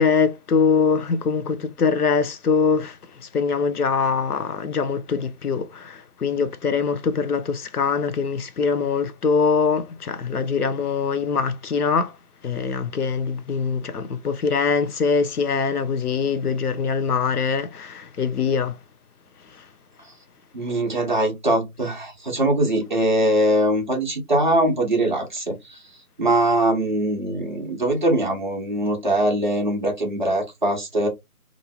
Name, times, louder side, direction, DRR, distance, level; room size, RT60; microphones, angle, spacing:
voice 1, 0.0-2.9 3.3-12.1 12.4-18.8, left 5 dB, 80° left, 0.7 m, -23 dB
voice 2, 20.5-25.8 26.2-31.1, right 1 dB, 30° right, 0.8 m, -22 dB
3.0 x 2.5 x 2.7 m
figure-of-eight pair, 160°, 45 cm